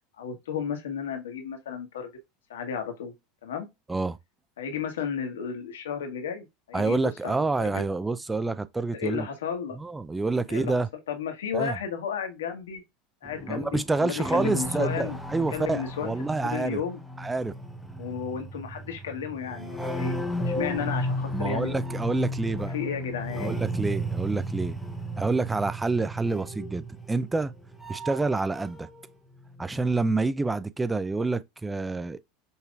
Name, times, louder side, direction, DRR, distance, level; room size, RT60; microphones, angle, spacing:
voice 1, 0.2-2.1 2.5-3.1 3.4-3.7 4.6-7.8 8.9-9.8 10.5-12.8 13.2-15.2 15.5-16.1 16.4-17.0 18.0-20.2 20.5-21.8 22.5-23.6, left 7 dB, 75° left, 1.2 m, -33 dB
voice 2, 6.7-9.3 9.8-10.9 11.5-11.8 13.5-16.8 17.2-17.5 21.3-22.8 23.4-24.8 25.2-27.5 27.9-28.9 29.6-32.2, right 3 dB, 15° right, 0.4 m, -28 dB
sound 1, 13.2-29.0 29.3-30.1, equal, 5° left, 0.8 m, -34 dB
5.5 x 3.0 x 2.4 m
hypercardioid pair, 85°, 0 cm